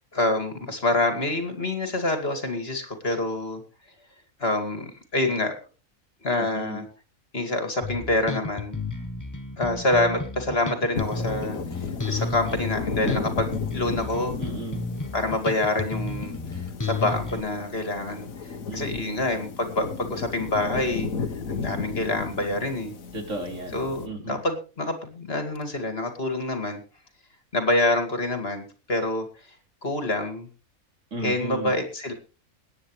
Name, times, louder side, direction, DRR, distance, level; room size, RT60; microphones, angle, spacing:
voice 1, 0.1-3.6 4.4-5.6 6.2-6.9 7.3-8.8 9.6-14.4 15.1-16.3 16.8-18.3 18.7-21.1 21.5-22.9 23.7-26.8 27.5-29.3 29.8-30.5 31.2-32.1, left 2 dB, 45° left, 6 dB, 2.6 m, -26 dB
voice 2, 6.3-6.9 14.4-14.9 18.7-19.1 23.1-23.8 24.1-24.4 31.1-31.7, right 2 dB, 65° right, 2 dB, 3.8 m, -35 dB
Bass guitar, 7.8-17.4, left 3 dB, 15° left, 0.9 m, -32 dB
sound 1, 10.9-24.1, left 5 dB, 75° left, 1.7 m, -34 dB
22.5 x 10.0 x 3.3 m, 0.33 s
omnidirectional pair, 1.4 m